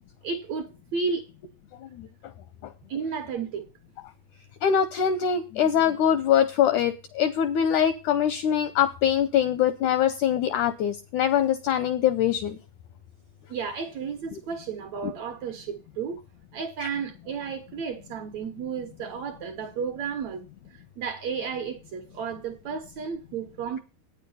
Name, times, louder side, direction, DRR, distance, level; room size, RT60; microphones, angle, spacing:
voice 1, 0.2-1.3 2.9-3.7 13.5-16.2 16.5-20.4 20.7-23.8, right 6 dB, 70° right, 1.7 m, -33 dB
voice 2, 4.6-12.6 16.8-16.9, left 9 dB, 80° left, 1.7 m, -23 dB
9.2 x 9.1 x 5.4 m
omnidirectional pair, 4.2 m